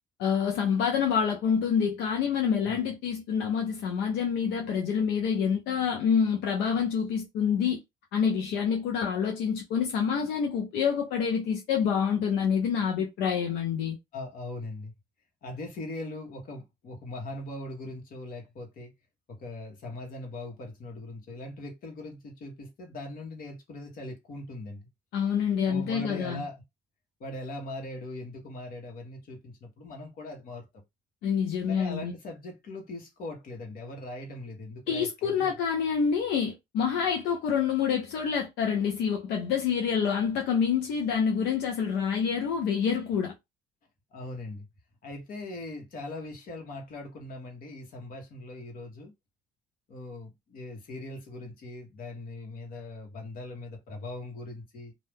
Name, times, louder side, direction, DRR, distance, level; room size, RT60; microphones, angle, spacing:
voice 1, 0.2-7.8 8.1-14.0 25.1-26.4 31.2-32.1 34.9-43.3, left 7 dB, 85° left, 0.7 m, -27 dB
voice 2, 14.1-14.9 15.4-18.9 19.3-24.8 25.7-26.6 27.2-30.7 31.7-35.5 44.1-44.7 45.0-49.1 49.9-54.9, left 2 dB, 55° left, 1.4 m, -40 dB
2.7 x 2.4 x 3.5 m
cardioid pair, 110°, 17 cm